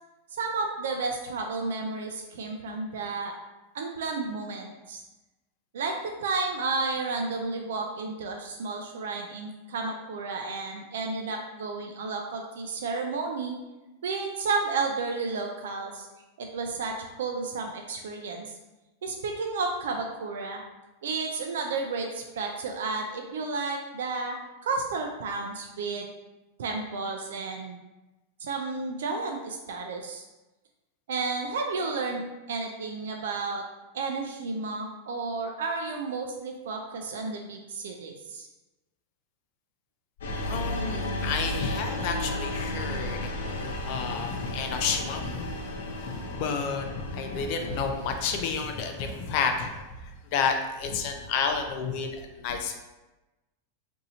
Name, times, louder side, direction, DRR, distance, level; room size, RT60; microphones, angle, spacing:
voice 1, 0.3-3.3 3.7-5.0 5.7-13.6 14.0-16.1 16.4-18.5 19.0-20.6 21.0-26.1 26.6-27.8 28.4-30.2 31.1-32.2 32.5-33.6 33.9-38.5, right 4 dB, 85° right, 2 dB, 0.4 m, -32 dB
sound 1, 40.2-47.9, left 1 dB, 90° left, 0.6 m, -34 dB
voice 2, 40.2-49.9 50.3-52.7, left 5 dB, 50° left, 5 dB, 0.5 m, -31 dB
2.7 x 2.6 x 4.2 m, 1.1 s
supercardioid pair, 140°, 0 cm